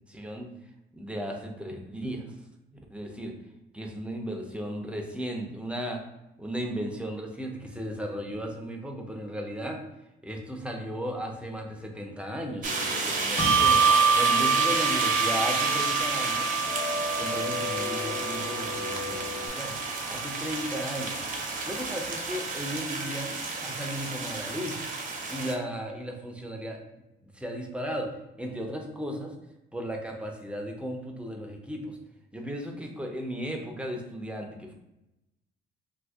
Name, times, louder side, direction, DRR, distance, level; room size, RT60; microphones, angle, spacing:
voice 1, 0.1-0.5 0.9-2.3 2.9-3.3 3.7-6.0 6.4-9.8 10.2-13.8 14.1-16.6 17.2-19.8 20.1-21.2 21.6-23.3 23.6-24.9 25.3-26.8 27.2-28.1 28.4-29.3 29.7-32.0 32.3-34.7, equal, 5° right, 1 dB, 0.6 m, -35 dB
sound 1, 12.6-19.5, left 4 dB, 55° left, 1.1 m, -38 dB
sound 2, 12.6-25.5, right 3 dB, 40° right, 0.7 m, -31 dB
Bell, 13.4-20.2, right 6 dB, 35° left, 0.8 m, -27 dB
2.7 x 2.6 x 3.5 m, 0.93 s
cardioid pair, 90°, 20 cm